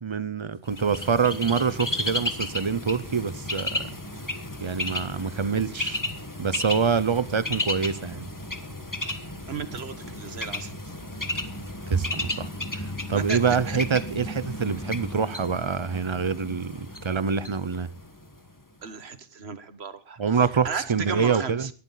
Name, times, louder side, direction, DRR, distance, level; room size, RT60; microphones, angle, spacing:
voice 1, 0.0-3.9 4.6-6.0 6.4-8.2 11.9-12.5 12.8-17.9 20.2-21.7, right 6 dB, 30° right, 0.6 m, -26 dB
Bird, 0.7-18.5, left 1 dB, 15° left, 1.5 m, -33 dB
voice 2, 9.5-10.7 13.1-13.4 13.7-13.8 18.8-21.7, right 6 dB, 60° right, 1.5 m, -35 dB
19.5 x 13.5 x 4.0 m
omnidirectional pair, 1.2 m